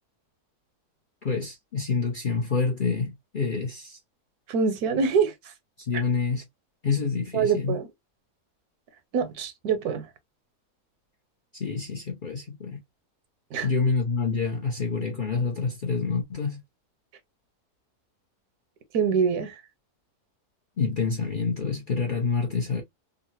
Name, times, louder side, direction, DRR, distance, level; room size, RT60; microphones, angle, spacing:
voice 1, 1.2-4.0 5.8-6.4 6.8-7.8 11.5-12.8 13.6-16.6 20.8-22.8, left 4 dB, 50° left, 0.6 m, -27 dB
voice 2, 4.5-5.3 7.3-7.9 9.1-10.1 13.5-13.7 18.9-19.5, right 6 dB, 75° right, 1.2 m, -24 dB
3.7 x 2.1 x 2.6 m
omnidirectional pair, 1.7 m